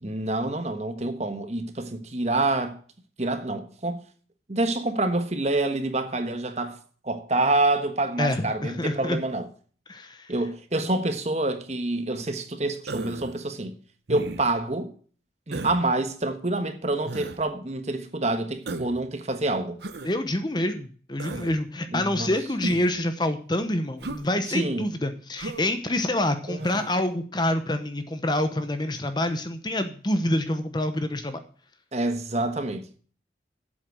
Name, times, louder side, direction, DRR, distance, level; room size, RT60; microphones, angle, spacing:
voice 1, 0.0-2.8 3.2-4.0 4.5-6.8 7.0-9.5 10.3-13.8 14.1-14.9 15.5-19.8 21.9-22.3 24.5-24.9 26.5-26.7 31.9-33.0, right 2 dB, 35° right, 1.3 m, -27 dB
voice 2, 8.2-9.2 9.9-10.3 20.0-31.4, left 1 dB, 25° left, 0.9 m, -27 dB
Human voice, 12.9-13.4 14.1-14.6 15.5-15.8 17.1-17.4 18.7-19.0 19.8-20.1 21.2-21.5 22.6-23.0 24.0-24.3 25.4-25.7 26.6-26.9, right 2 dB, 65° right, 0.9 m, -35 dB
8.1 x 8.0 x 7.7 m
head